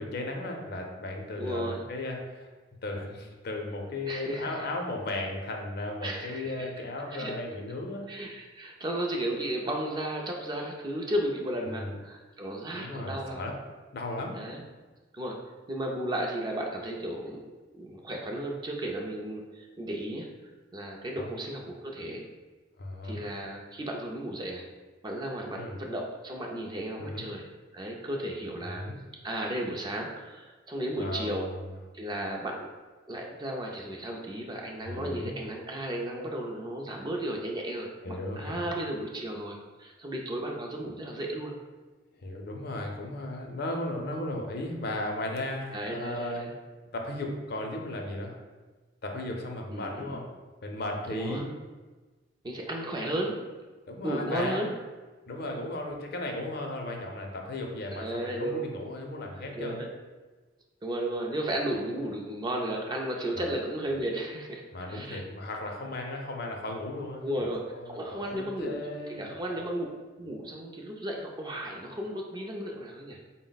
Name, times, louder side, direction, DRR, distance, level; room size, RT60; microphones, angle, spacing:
voice 1, 0.0-2.5 2.8-8.0 11.7-12.0 12.7-13.6 13.9-14.4 21.2-21.3 22.8-23.2 25.6-25.8 27.0-27.3 28.6-29.0 31.0-31.6 34.9-35.3 38.0-38.7 42.2-46.5 46.9-48.4 49.0-50.3 50.6-51.5 53.9-54.7 55.3-59.8 63.4-63.5 64.7-67.5 67.7-69.6, left 1 dB, 55° left, 2 dB, 0.5 m, -35 dB
voice 2, 1.4-1.8 4.1-4.5 6.0-6.7 7.1-7.3 8.1-13.5 14.3-14.6 15.1-15.4 15.7-17.4 17.7-20.3 20.7-22.2 23.0-24.7 25.0-27.5 27.7-28.8 29.2-31.5 31.9-32.7 33.1-41.5 45.7-46.5 49.7-50.2 51.1-51.4 52.4-53.4 54.0-54.7 57.9-58.6 59.3-59.9 60.8-64.6 64.9-65.2 67.2-68.8 69.1-69.9 70.2-73.2, right 1 dB, 25° right, 0 dB, 0.4 m, -34 dB
4.0 x 2.1 x 3.9 m, 1.3 s
head